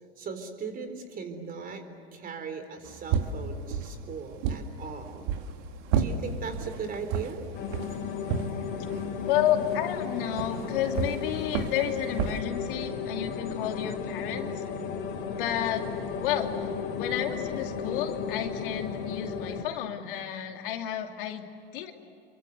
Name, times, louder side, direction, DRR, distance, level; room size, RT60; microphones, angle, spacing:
voice 1, 0.2-1.8 2.1-5.3 6.0-7.4, right 5 dB, 30° right, 8 dB, 3.9 m, -38 dB
sound 1, 2.8-12.4, right 6 dB, 50° right, 2.3 m, -33 dB
sound 2, 7.5-19.6, left 6 dB, 40° left, 4.0 m, -34 dB
voice 2, 9.2-14.6 15.4-15.9 16.2-16.7 17.0-21.9, left 10 dB, 60° left, 5 dB, 2.5 m, -31 dB
29.0 x 23.5 x 8.1 m, 2.5 s
hypercardioid pair, 95°, 30 cm